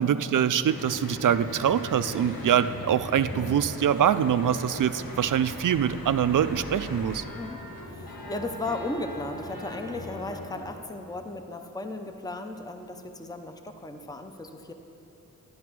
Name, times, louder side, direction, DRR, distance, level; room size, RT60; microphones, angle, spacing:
voice 1, 0.0-7.2, right 9 dB, 65° right, 13 dB, 0.5 m, -24 dB
Church bell / Traffic noise roadway noise, 0.7-10.6, left 1 dB, 85° left, 1.5 m, -39 dB
voice 2, 7.3-14.7, left 2 dB, 10° left, 6 dB, 0.7 m, -36 dB
12.5 x 10.0 x 6.1 m, 3.0 s
wide cardioid pair, 120°, 34 cm